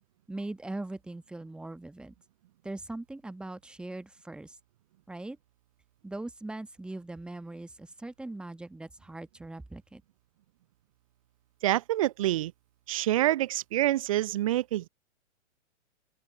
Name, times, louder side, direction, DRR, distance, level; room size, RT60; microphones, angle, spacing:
voice 1, 0.3-2.1 2.6-4.6 5.1-5.4 6.0-10.0, right 2 dB, 5° right, 1.2 m, -40 dB
voice 2, 11.6-12.5 12.9-14.9, right 14 dB, 30° right, 0.6 m, -27 dB
open air
figure-of-eight pair, 115°, 36 cm